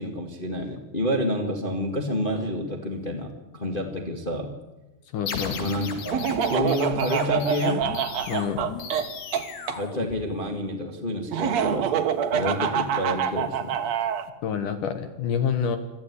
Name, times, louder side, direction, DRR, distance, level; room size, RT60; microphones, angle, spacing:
voice 1, 0.0-4.5 5.6-7.8 9.8-12.0 12.3-13.8, left 1 dB, 45° left, 3 dB, 0.6 m, -29 dB
voice 2, 5.1-5.6 8.3-8.6 14.4-15.8, left 7 dB, 65° left, 9 dB, 2.5 m, -27 dB
sound 1, 5.3-10.7, left 6 dB, 85° left, 4.4 m, -36 dB
Laughter, 6.1-9.8 11.3-14.2, right 8 dB, 65° right, 1.8 m, -26 dB
23.0 x 14.5 x 9.8 m, 1.1 s
omnidirectional pair, 4.6 m